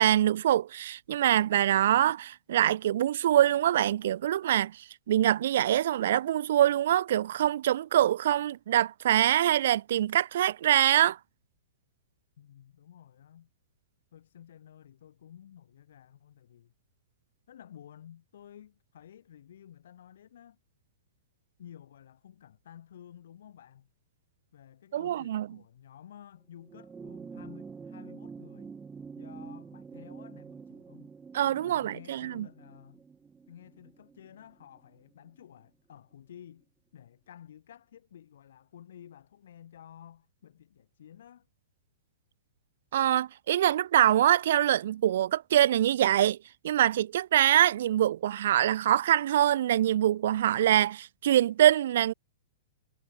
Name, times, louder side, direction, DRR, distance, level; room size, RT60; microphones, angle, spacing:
voice 1, 0.0-11.2 24.9-25.5 31.3-32.5 42.9-46.4 46.6-52.1, right 11 dB, 60° right, 0.5 m, -24 dB
voice 2, 12.4-13.5 14.1-16.7 17.5-20.6 21.6-23.9 24.5-28.7 29.2-31.1 31.6-33.0 33.5-41.5, left 10 dB, 70° left, 6.6 m, -52 dB
sound 1, 26.6-35.3 36.5-36.6, right 5 dB, 10° right, 7.6 m, -47 dB
hypercardioid pair, 165°, 0 cm